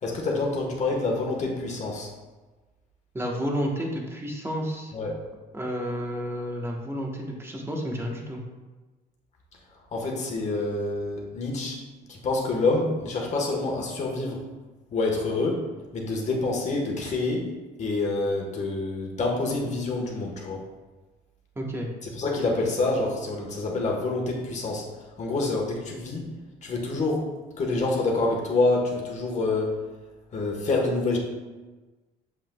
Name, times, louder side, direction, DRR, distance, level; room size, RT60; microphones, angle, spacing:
voice 1, 0.0-2.1 4.9-5.1 9.9-11.8 12.1-14.4 14.9-15.6 15.9-17.5 17.8-20.6 22.0-24.8 25.2-26.3 26.6-27.2 27.6-29.7 30.3-31.2, left 2 dB, 45° left, -1 dB, 1.3 m, -27 dB
voice 2, 3.1-4.9 5.5-8.4 21.6-21.9, equal, 15° right, 0 dB, 1.1 m, -31 dB
7.2 x 5.7 x 2.3 m, 1.2 s
cardioid pair, 110°, 17 cm